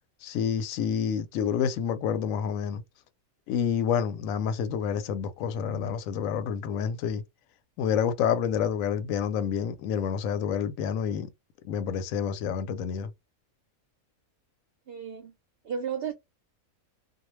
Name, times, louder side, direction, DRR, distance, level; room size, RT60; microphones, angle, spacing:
voice 1, 0.2-2.8 3.5-7.2 7.8-11.3 11.6-13.1, left 8 dB, 75° left, 0.9 m, -28 dB
voice 2, 14.9-15.3 15.6-16.1, right 7 dB, 65° right, 0.6 m, -33 dB
2.3 x 2.1 x 3.0 m
omnidirectional pair, 1.5 m